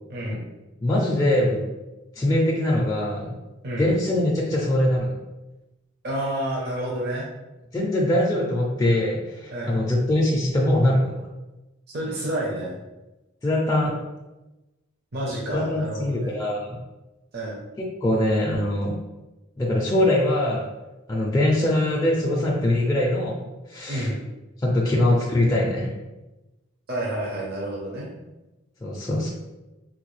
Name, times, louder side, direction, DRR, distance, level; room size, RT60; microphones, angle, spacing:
voice 1, 0.1-0.4 3.6-3.9 6.0-7.3 9.5-9.8 11.9-12.8 15.1-16.4 17.3-17.6 23.9-24.2 26.9-28.1, right 1 dB, 50° right, -4 dB, 0.6 m, -29 dB
voice 2, 0.8-1.6 2.2-3.3 3.8-5.1 7.7-11.3 13.4-13.9 15.5-16.7 17.8-18.9 19.6-20.7 21.1-23.4 23.7-24.1 24.6-25.9 28.8-29.3, left 1 dB, 15° left, -4 dB, 0.4 m, -22 dB
3.7 x 2.3 x 3.1 m, 1.0 s
head